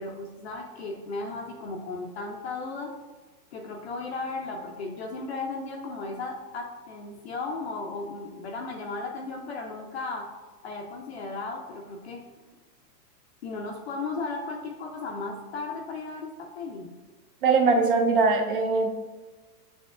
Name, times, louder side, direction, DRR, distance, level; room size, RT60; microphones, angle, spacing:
voice 1, 0.0-3.0 3.5-10.3 10.6-12.2 13.4-16.9, left 3 dB, 45° left, 2 dB, 0.5 m, -35 dB
voice 2, 17.4-18.9, right 4 dB, 35° right, 3 dB, 0.4 m, -21 dB
7.6 x 2.8 x 2.4 m, 1.3 s
supercardioid pair, 160°, 49 cm